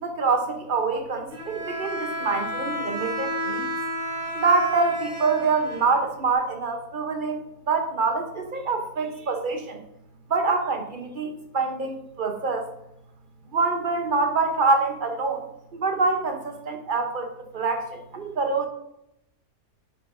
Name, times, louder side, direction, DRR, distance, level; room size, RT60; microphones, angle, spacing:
voice 1, 0.0-3.7 4.3-9.8 10.3-12.6 13.5-15.4 15.7-17.3 17.5-18.7, right 4 dB, 35° right, 4 dB, 1.0 m, -25 dB
Bowed string instrument, 1.3-6.3, equal, 65° right, 2.7 m, -31 dB
9.0 x 6.9 x 2.7 m, 0.81 s
omnidirectional pair, 1.7 m